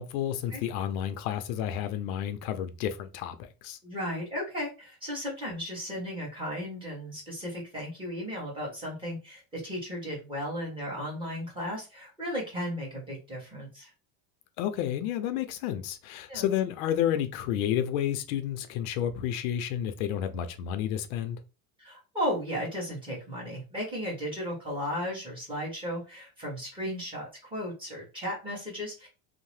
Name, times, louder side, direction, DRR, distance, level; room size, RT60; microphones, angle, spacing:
voice 1, 0.0-3.8 14.6-21.4, left 10 dB, 80° left, 0.6 m, -31 dB
voice 2, 3.8-13.9 16.3-16.5 21.8-29.1, equal, 10° right, 1.1 m, -35 dB
2.7 x 2.0 x 3.2 m
cardioid pair, 170°, 42 cm